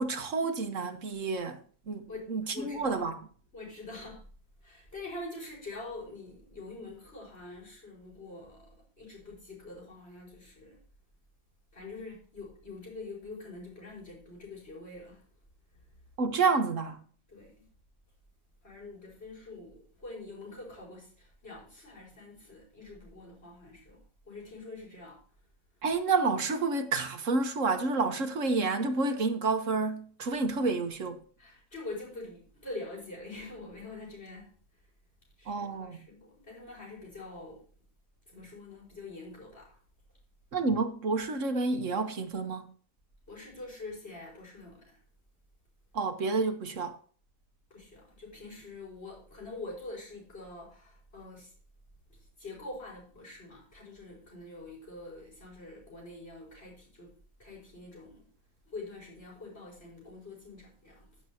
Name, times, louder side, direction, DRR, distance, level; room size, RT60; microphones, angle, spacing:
voice 1, 0.0-1.6 1.9-3.2 16.2-17.0 25.8-31.2 35.5-36.0 40.5-42.7 45.9-47.0, right 3 dB, 65° right, 1.5 m, -29 dB
voice 2, 2.1-3.0 3.5-4.3 4.6-10.8 11.7-15.3 17.3-17.7 18.6-25.2 31.4-34.5 35.4-37.6 38.3-39.8 43.3-45.0 47.7-51.5 52.1-57.1 57.4-58.3 58.7-61.2, left 2 dB, 45° left, 5.7 m, -45 dB
15.5 x 7.4 x 2.9 m
omnidirectional pair, 1.5 m